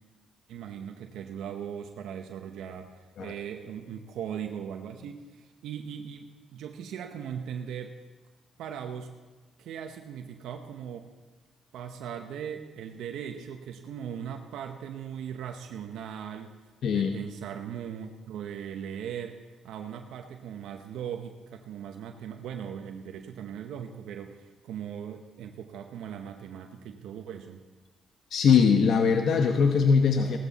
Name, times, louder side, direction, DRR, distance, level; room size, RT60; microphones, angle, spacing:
voice 1, 0.5-8.0 8.6-9.1 9.6-11.1 11.7-16.5 16.9-27.6, right 8 dB, 80° right, 5 dB, 0.9 m, -39 dB
voice 2, 28.3-30.4, left 6 dB, 65° left, 5 dB, 0.9 m, -21 dB
16.5 x 13.0 x 4.1 m, 1.3 s
cardioid pair, 90°, 0 cm